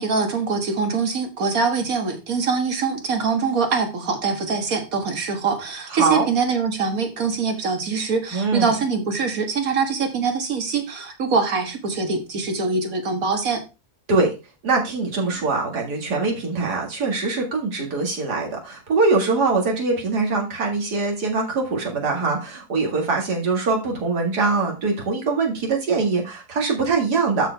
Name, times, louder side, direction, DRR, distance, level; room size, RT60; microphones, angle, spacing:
voice 1, 0.0-13.6, right 4 dB, 60° right, 5 dB, 2.0 m, -23 dB
voice 2, 5.9-6.3 8.3-8.7 14.1-14.3 14.6-27.5, right 3 dB, 90° right, 0 dB, 2.6 m, -22 dB
13.0 x 4.5 x 3.4 m, 0.29 s
omnidirectional pair, 1.7 m